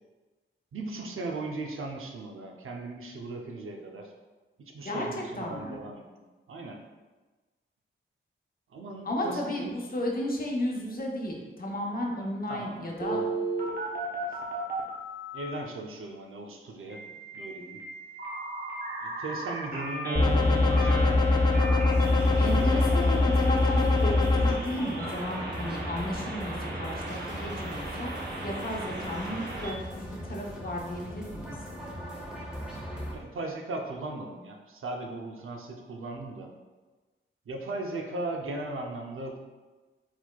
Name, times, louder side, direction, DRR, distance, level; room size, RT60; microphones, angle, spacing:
voice 1, 0.7-4.1 4.6-6.0 6.5-6.8 8.7-9.7 12.5-13.4 15.3-17.0 17.3-17.8 19.0-21.2 22.4-22.9 33.1-36.5 37.5-39.4, right 2 dB, 80° right, 2 dB, 0.6 m, -37 dB
voice 2, 4.8-5.8 9.0-13.2 22.4-28.1 28.4-31.6, left 1 dB, 45° left, -1 dB, 0.8 m, -34 dB
Telephone, 13.0-15.5 16.9-29.7, right 2 dB, 50° right, 0.9 m, -36 dB
sound 1, 20.2-24.5, left 2 dB, 20° left, 0.4 m, -22 dB
sound 2, 21.9-33.2, equal, 5° right, 0.8 m, -40 dB
4.3 x 4.2 x 2.3 m, 1.3 s
wide cardioid pair, 115°, 21 cm